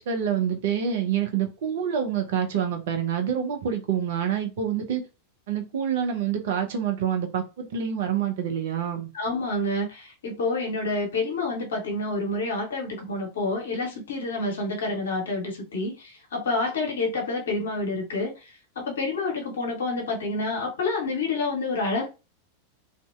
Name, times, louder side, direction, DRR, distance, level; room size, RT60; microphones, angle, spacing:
voice 1, 0.0-5.0 5.5-9.1, right 8 dB, 55° right, 0.5 m, -27 dB
voice 2, 9.1-22.1, left 2 dB, 65° left, 0.8 m, -28 dB
2.6 x 2.1 x 2.3 m
figure-of-eight pair, 90°, 0 cm